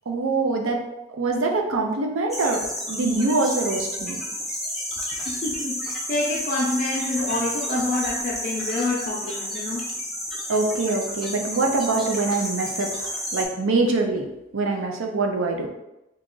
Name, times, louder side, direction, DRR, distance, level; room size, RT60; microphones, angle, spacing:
voice 1, 0.1-0.8 1.2-4.2 10.5-14.3 14.5-15.7, right 3 dB, 85° right, 2 dB, 0.5 m, -24 dB
sound 1, 2.3-13.4, equal, ahead, 0.6 m, -31 dB
voice 2, 5.1-9.8, left 2 dB, 45° left, -4 dB, 0.6 m, -27 dB
3.0 x 2.4 x 3.7 m, 0.95 s
head